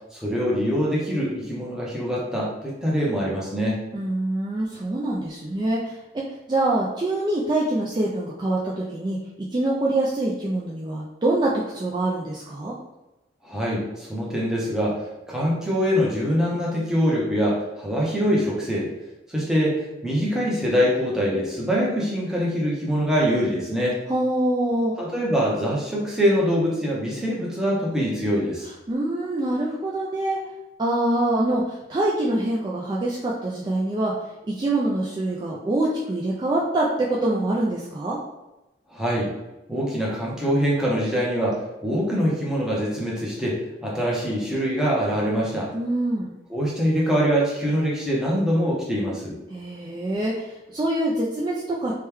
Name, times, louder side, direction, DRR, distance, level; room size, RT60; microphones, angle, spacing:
voice 1, 0.1-3.8 13.4-18.9 19.3-24.0 25.0-28.7 38.9-39.3 39.7-45.7 46.5-49.4, equal, 5° right, -5 dB, 0.7 m, -24 dB
voice 2, 3.9-9.2 9.5-12.8 24.1-24.9 28.9-30.4 30.8-34.1 34.5-38.2 45.7-46.3 49.5-51.9, right 1 dB, 25° right, -5 dB, 0.3 m, -25 dB
3.0 x 2.2 x 3.3 m, 0.99 s
head